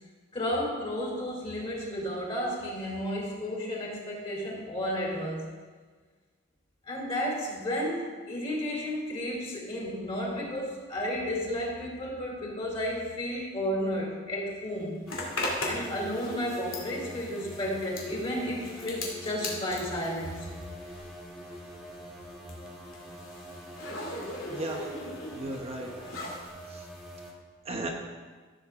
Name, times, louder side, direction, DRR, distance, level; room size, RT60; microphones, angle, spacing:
voice 1, 0.3-5.5 6.8-15.0 15.6-20.5, equal, 30° left, -3 dB, 3.3 m, -32 dB
Zipper (clothing), 15.1-21.3 21.5-26.5, left 1 dB, 75° left, 2.6 m, -38 dB
sound 1, 15.1-27.3, right 1 dB, ahead, 1.9 m, -45 dB
voice 2, 24.5-24.9 25.3-25.9 26.7-26.8 27.6-27.9, right 2 dB, 30° right, 0 dB, 0.9 m, -35 dB
15.0 x 7.7 x 3.7 m, 1.4 s
head